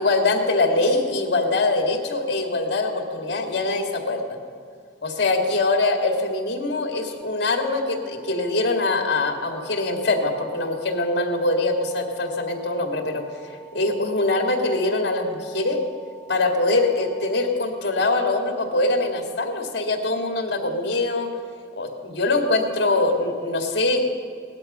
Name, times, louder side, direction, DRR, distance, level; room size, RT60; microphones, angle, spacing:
voice 1, 0.0-4.2 5.0-15.8 16.3-21.3 21.8-24.0, left 2 dB, 60° left, 2 dB, 2.1 m, -23 dB
sound 1, 7.2-17.2, right 2 dB, 25° left, 2.2 m, -49 dB
17.5 x 12.0 x 5.5 m, 2.3 s
head